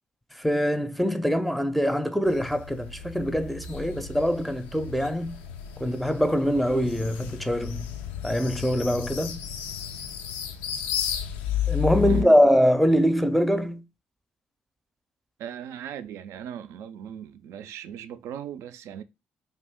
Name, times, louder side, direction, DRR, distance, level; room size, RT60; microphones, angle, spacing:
voice 1, 0.3-5.4 5.8-7.9 8.2-9.4 11.7-13.8, equal, ahead, 0.5 m, -23 dB
sound 1, 2.3-12.2, left 8 dB, 85° left, 0.3 m, -33 dB
voice 2, 15.4-19.0, right 9 dB, 70° right, 0.3 m, -38 dB
2.6 x 2.4 x 3.5 m
hypercardioid pair, 45°, 5 cm